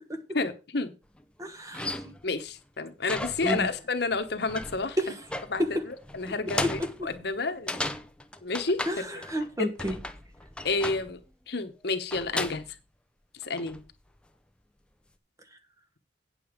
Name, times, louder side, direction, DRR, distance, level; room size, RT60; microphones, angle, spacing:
voice 1, 0.3-0.9 2.2-5.0 5.5-7.8 8.4-9.0 9.6-9.7 10.6-11.2 11.5-12.6 13.4-13.8, left 3 dB, 55° left, 8 dB, 1.1 m, -30 dB
sound 1, 1.2-1.3 1.7-2.4 3.1-3.9 4.1-9.5 9.8-11.2 12.1-12.7 13.4-13.9, left 1 dB, 5° left, 0.6 m, -36 dB
voice 2, 1.4-2.1 3.4-3.7 5.0-5.1 5.6-5.7 6.6-6.9 8.9-10.0, equal, 15° right, 8 dB, 1.1 m, -30 dB
9.0 x 6.9 x 5.1 m, 0.30 s
head